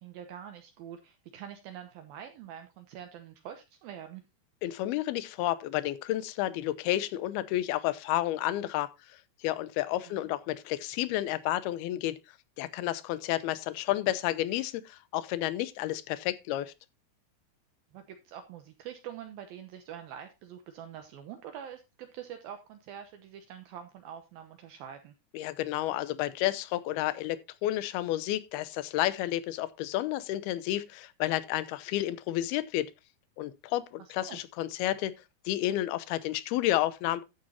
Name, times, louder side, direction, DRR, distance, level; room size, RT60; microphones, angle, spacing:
voice 1, 0.0-4.2 10.0-10.2 17.9-25.1 34.0-34.4, right 9 dB, 70° right, 2.6 m, -45 dB
voice 2, 4.6-12.2 12.6-16.7 25.3-32.9 33.4-35.1 35.5-37.2, left 14 dB, 80° left, 2.7 m, -31 dB
11.5 x 9.6 x 2.8 m
omnidirectional pair, 4.7 m